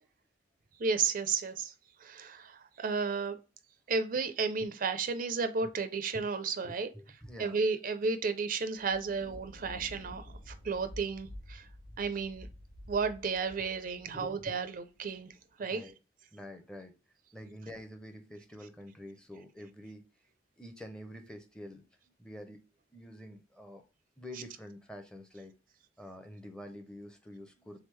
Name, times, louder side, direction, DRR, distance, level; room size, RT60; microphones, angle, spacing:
voice 1, 0.8-1.7 2.0-3.4 3.9-6.9 7.4-11.7 12.0-12.5 12.9-15.3 15.6-15.9, right 4 dB, 45° right, 0.4 m, -33 dB
voice 2, 6.6-7.6 14.1-14.6 15.6-15.9 16.3-16.9 17.3-20.0 20.6-21.8 22.2-22.6 22.9-23.8 24.2-25.5 26.0-27.8, equal, 5° left, 0.6 m, -47 dB
Thunder, 8.7-15.4, left 1 dB, 90° left, 1.2 m, -50 dB
3.6 x 3.5 x 3.1 m
head